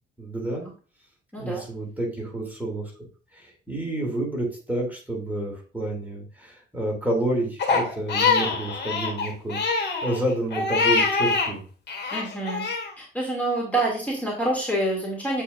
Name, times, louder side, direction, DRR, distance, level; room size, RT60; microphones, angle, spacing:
voice 1, 0.2-0.7 1.4-2.9 3.3-11.6, right 1 dB, 10° right, -2 dB, 2.9 m, -29 dB
voice 2, 1.3-1.7 12.1-12.7 13.0-15.4, right 1 dB, 5° left, -3 dB, 2.7 m, -27 dB
Crying sobbing, 7.6-11.5 11.9-12.9, left 4 dB, 60° left, 1.9 m, -24 dB
8.4 x 4.8 x 2.6 m, 0.38 s
cardioid pair, 90°, 20 cm